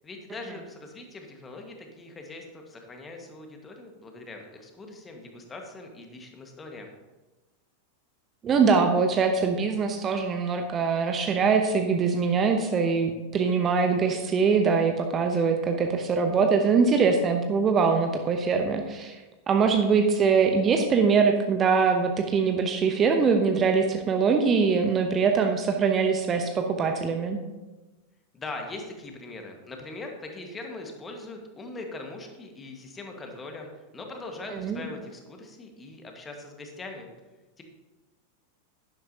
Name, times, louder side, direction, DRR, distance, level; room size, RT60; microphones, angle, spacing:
voice 1, 0.0-6.9 28.3-37.1 37.6-37.7, left 2 dB, 15° left, 3 dB, 1.7 m, -41 dB
voice 2, 8.4-19.2 19.5-27.4 34.5-34.8, right 5 dB, 25° right, 5 dB, 0.8 m, -23 dB
11.0 x 11.0 x 2.9 m, 1.1 s
figure-of-eight pair, 90°, 0 cm